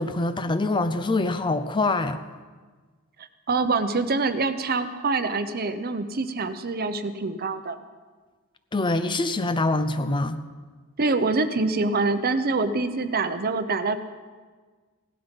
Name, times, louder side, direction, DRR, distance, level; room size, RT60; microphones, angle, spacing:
voice 1, 0.0-2.2 8.7-10.4, left 2 dB, 20° left, 10 dB, 0.5 m, -24 dB
voice 2, 3.5-7.8 11.0-14.0, right 3 dB, 45° right, 10 dB, 0.8 m, -25 dB
17.0 x 12.0 x 5.3 m, 1.4 s
head